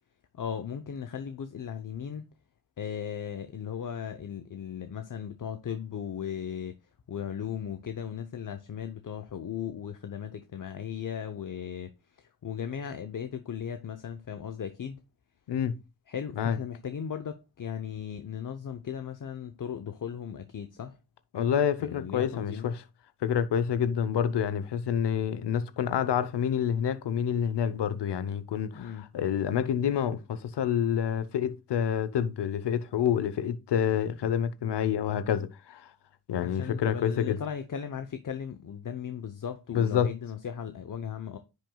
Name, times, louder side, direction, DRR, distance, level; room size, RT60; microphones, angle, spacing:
voice 1, 0.3-2.3 2.8-6.8 7.1-15.0 16.1-21.0 21.8-22.7 28.7-29.1 36.4-41.4, left 8 dB, 50° left, 0.8 m, -37 dB
voice 2, 15.5-15.8 16.4-16.6 21.3-22.8 23.2-28.8 29.1-35.9 36.3-37.4 39.7-40.1, left 8 dB, 75° left, 0.8 m, -28 dB
9.8 x 6.3 x 2.3 m
cardioid pair, 55°, 41 cm